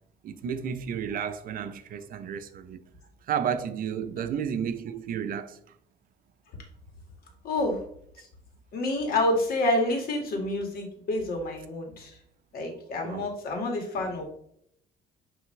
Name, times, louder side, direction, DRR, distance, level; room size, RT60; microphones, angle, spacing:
voice 1, 0.2-2.8 3.3-5.6 13.0-13.3, right 8 dB, 55° right, 0.6 m, -32 dB
voice 2, 7.4-7.8 8.2-8.3 8.7-12.1 12.5-14.2, left 1 dB, 60° left, 2.0 m, -28 dB
9.3 x 3.3 x 3.2 m
cardioid pair, 110°, 17 cm